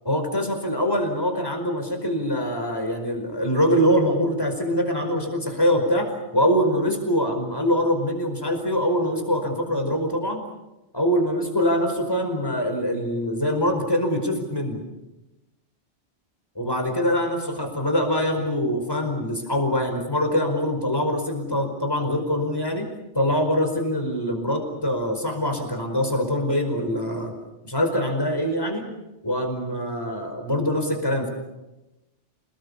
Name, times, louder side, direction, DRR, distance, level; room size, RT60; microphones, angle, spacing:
voice 1, 0.0-10.4 10.9-14.8 16.5-22.9 23.1-27.3 27.6-28.8 29.2-31.3, equal, 20° left, 4 dB, 5.1 m, -24 dB
29.0 x 19.5 x 7.2 m, 1.0 s
omnidirectional pair, 1.2 m